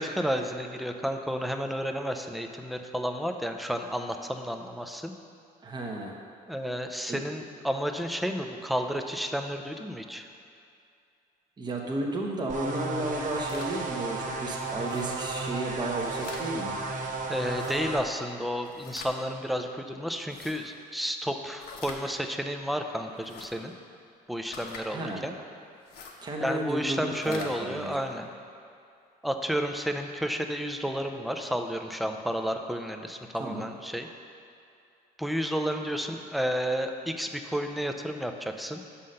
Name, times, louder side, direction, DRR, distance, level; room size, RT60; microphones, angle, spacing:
voice 1, 0.0-5.1 6.5-10.3 17.3-23.7 24.3-25.3 26.4-28.3 29.2-34.1 35.2-38.8, equal, ahead, 5 dB, 0.5 m, -31 dB
voice 2, 5.6-6.1 7.1-7.2 11.6-16.8 24.9-25.3 26.2-28.0 33.4-33.7, right 2 dB, 25° right, 0 dB, 0.9 m, -33 dB
sound 1, 12.5-18.0, right 3 dB, 50° right, 1.0 m, -34 dB
sound 2, 13.1-13.7 14.8-15.1 15.9-16.4 17.5-17.8 18.6-19.1 20.2-20.6 21.6-22.0 23.1-23.5 24.5-24.8 25.8-26.2 27.0-27.5, left 5 dB, 65° left, 1.0 m, -44 dB
5.7 x 5.5 x 6.4 m, 2.4 s
cardioid pair, 110°, 17 cm